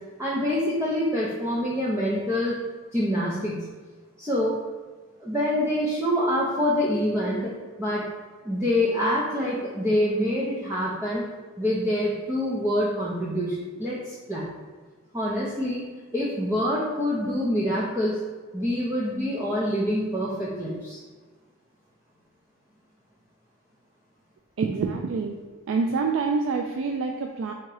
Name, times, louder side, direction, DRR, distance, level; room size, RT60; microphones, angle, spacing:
voice 1, 0.2-2.6 2.9-3.7 4.2-4.6 5.2-8.1 8.4-11.2 11.6-14.5 15.1-15.8 16.1-18.2 18.5-21.0, equal, 15° right, -7 dB, 0.6 m, -26 dB
voice 2, 24.6-25.4 25.7-27.5, right 4 dB, 65° right, 3 dB, 0.3 m, -26 dB
3.5 x 2.9 x 4.7 m, 1.4 s
head